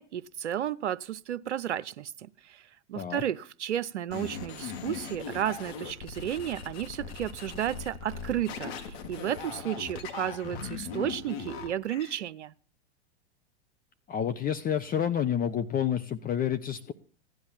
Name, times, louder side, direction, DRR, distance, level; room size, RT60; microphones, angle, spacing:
voice 1, 0.0-12.5, right 11 dB, 85° right, 0.8 m, -33 dB
sound 1, 4.1-12.2, left 6 dB, 60° left, 3.7 m, -39 dB
voice 2, 14.1-16.9, left 9 dB, 25° left, 1.0 m, -29 dB
16.5 x 10.5 x 7.3 m
hypercardioid pair, 105°, 34 cm